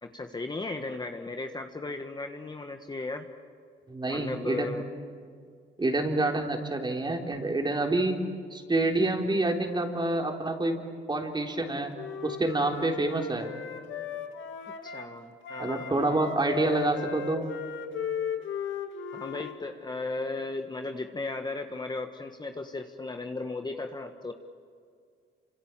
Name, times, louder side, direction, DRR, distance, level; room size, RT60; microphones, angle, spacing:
voice 1, 0.0-3.3 4.1-4.8 14.6-16.2 19.1-24.3, left 3 dB, 20° left, 5 dB, 1.5 m, -36 dB
voice 2, 3.9-4.7 5.8-8.2 8.5-10.8 11.1-11.9 12.2-13.5 15.6-17.5, right 2 dB, 20° right, 2 dB, 3.8 m, -27 dB
Wind instrument woodwind instrument, 11.5-15.1 15.4-19.6, left 7 dB, 75° left, 2.1 m, -36 dB
28.0 x 26.0 x 7.5 m, 2.2 s
cardioid pair, 90°, 20 cm